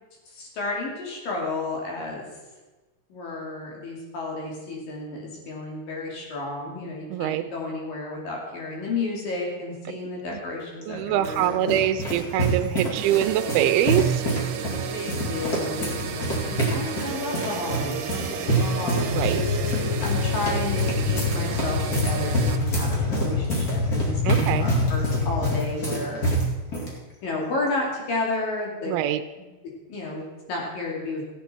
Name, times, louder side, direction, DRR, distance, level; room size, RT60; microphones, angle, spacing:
voice 1, 0.3-2.2 3.1-11.7 14.9-19.5 20.0-21.8 22.0-26.2 27.2-28.9 29.4-29.5 29.9-31.2, left 2 dB, 65° left, -2 dB, 4.3 m, -32 dB
voice 2, 7.1-7.4 10.9-14.2 19.1-19.4 24.3-24.7 28.9-29.2, right 12 dB, 85° right, 8 dB, 2.5 m, -24 dB
sound 1, 10.8-26.9, right 2 dB, 30° left, 2.1 m, -27 dB
sound 2, 13.0-22.6, right 6 dB, 70° right, 2.3 m, -33 dB
sound 3, 18.9-25.6, left 4 dB, 45° left, 5.6 m, -26 dB
15.5 x 9.3 x 4.4 m, 1.2 s
omnidirectional pair, 4.3 m